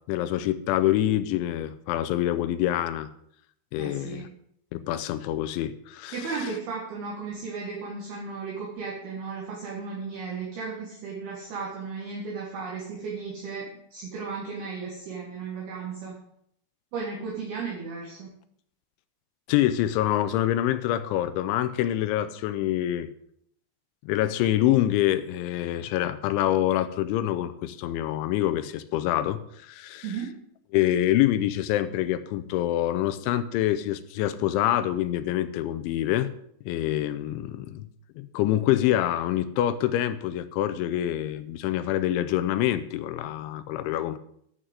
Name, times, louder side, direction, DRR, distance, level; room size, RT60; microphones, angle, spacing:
voice 1, 0.1-3.1 3.7-4.3 4.7-6.5 19.5-23.1 24.0-30.1 30.7-36.3 36.7-37.9 38.2-44.2, left 13 dB, 85° left, 12 dB, 3.0 m, -26 dB
voice 2, 3.8-4.3 6.1-13.7 13.9-16.2 16.9-18.3 30.0-30.3, right 5 dB, 60° right, -3 dB, 3.4 m, -35 dB
11.0 x 6.3 x 7.9 m, 0.69 s
omnidirectional pair, 5.5 m